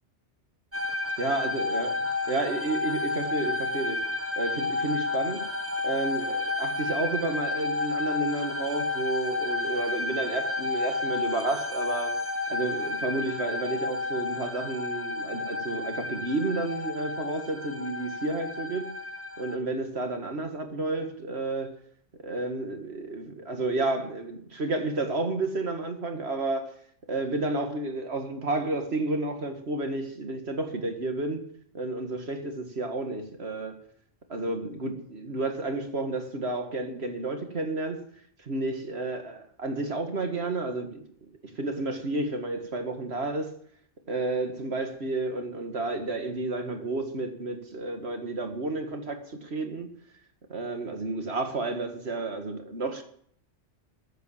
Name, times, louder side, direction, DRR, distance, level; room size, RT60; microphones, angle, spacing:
sound 1, 0.7-19.6, left 3 dB, 15° right, 1.0 m, -31 dB
voice 1, 1.2-1.9 2.3-4.0 4.4-5.4 5.8-12.2 12.5-18.9 19.4-21.7 22.2-26.7 27.1-31.4 31.7-33.8 34.3-38.0 38.4-41.3 41.6-43.5 44.1-49.9 50.5-53.0, right 2 dB, 65° right, 2.1 m, -31 dB
14.5 x 8.3 x 7.3 m
omnidirectional pair, 1.2 m